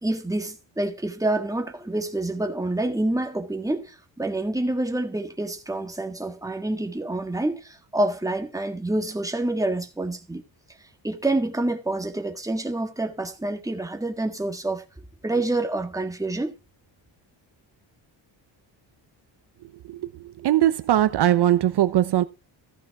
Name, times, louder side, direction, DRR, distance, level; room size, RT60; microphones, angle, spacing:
voice 1, 0.0-10.4 11.0-14.8 15.2-16.6, right 2 dB, 5° right, 1.7 m, -27 dB
voice 2, 20.4-22.2, right 12 dB, 60° right, 0.8 m, -20 dB
15.0 x 5.7 x 4.8 m
cardioid pair, 110°, 45 cm